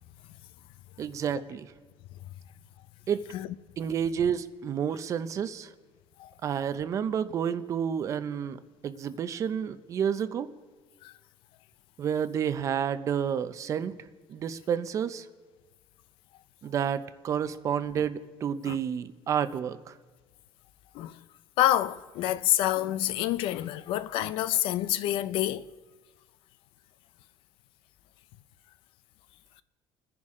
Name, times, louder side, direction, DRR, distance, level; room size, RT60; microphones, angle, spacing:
voice 1, 1.0-1.7 3.1-3.3 3.8-5.7 6.4-10.5 12.0-15.3 16.6-20.0, right 8 dB, 35° right, 0.6 m, -30 dB
voice 2, 21.6-25.7, left 13 dB, 70° left, 0.6 m, -27 dB
28.0 x 10.5 x 3.7 m
cardioid pair, 165°, 9 cm